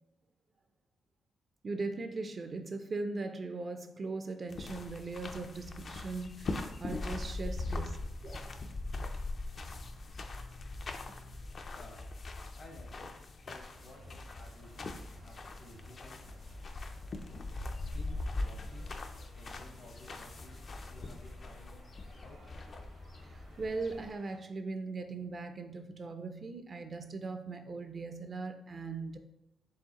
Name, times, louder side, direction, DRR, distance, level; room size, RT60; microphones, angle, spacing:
voice 1, 1.6-8.0 8.2-8.6 11.2-11.3 23.2-29.2, right 3 dB, 45° right, 7 dB, 0.4 m, -39 dB
sound 1, 4.5-24.1, left 2 dB, 50° left, 0.4 m, -41 dB
voice 2, 11.7-12.1 12.6-16.3 17.8-19.0 19.3-21.8 22.2-22.4, left 1 dB, 70° left, 0 dB, 1.2 m, -55 dB
sound 2, 13.7-24.4, right 1 dB, 70° right, 0.9 m, -60 dB
4.7 x 3.5 x 2.9 m, 0.89 s
cardioid pair, 80°, 0 cm